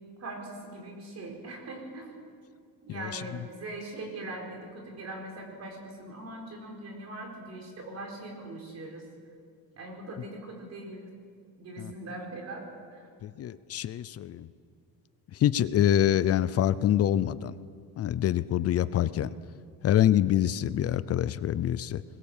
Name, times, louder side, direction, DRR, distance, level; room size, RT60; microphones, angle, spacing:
voice 1, 0.2-2.1 2.8-9.0 9.7-11.0 11.6-12.7 12.9-13.1, right 2 dB, 40° right, 2 dB, 4.6 m, -41 dB
voice 2, 2.9-3.2 11.8-11.9 13.2-14.5 15.3-17.5 18.0-19.3 19.8-22.0, left 11 dB, 35° left, 16 dB, 0.5 m, -26 dB
22.0 x 21.0 x 7.3 m, 2.2 s
cardioid pair, 165°, 41 cm